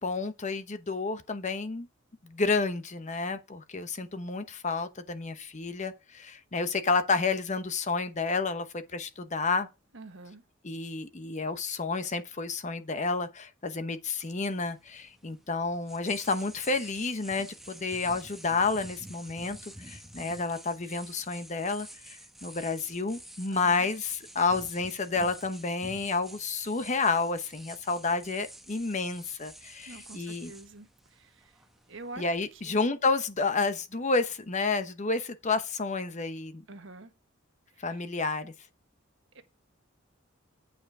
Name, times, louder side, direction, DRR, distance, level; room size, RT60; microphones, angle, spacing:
voice 1, 0.0-1.9 2.2-9.7 10.6-30.5 32.2-36.6 37.8-38.5, left 4 dB, 35° left, 0.9 m, -30 dB
voice 2, 9.9-10.4 23.5-23.9 29.9-31.6 31.9-32.2 32.5-32.8 36.7-37.1 37.7-38.0 39.3-39.4, right 2 dB, 65° right, 1.4 m, -47 dB
sound 1, 14.2-32.7, right 1 dB, ahead, 1.0 m, -49 dB
9.1 x 5.2 x 4.8 m
head